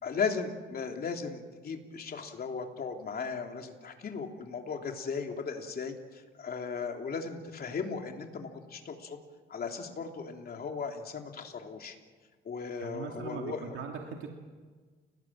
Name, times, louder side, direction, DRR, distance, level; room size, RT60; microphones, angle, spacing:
voice 1, 0.0-9.2 9.5-12.0 12.4-13.8, left 5 dB, 50° left, 3 dB, 3.2 m, -37 dB
voice 2, 12.8-14.3, right 6 dB, 80° right, 1 dB, 2.6 m, -40 dB
30.0 x 19.0 x 7.6 m, 1.4 s
cardioid pair, 90°, 20 cm